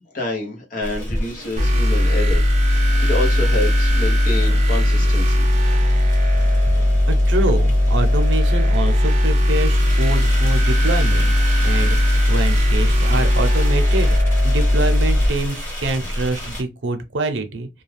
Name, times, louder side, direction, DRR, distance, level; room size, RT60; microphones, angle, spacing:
voice 1, 0.1-2.4 3.0-5.4, left 2 dB, 45° left, 0.9 m, -27 dB
sound 1, 0.8-16.6, equal, 15° left, 1.3 m, -32 dB
sound 2, 1.6-15.3, left 1 dB, 40° right, 0.6 m, -17 dB
voice 2, 7.1-11.4 11.6-14.2 14.4-17.7, right 2 dB, 90° right, 0.6 m, -25 dB
2.3 x 2.3 x 3.2 m
head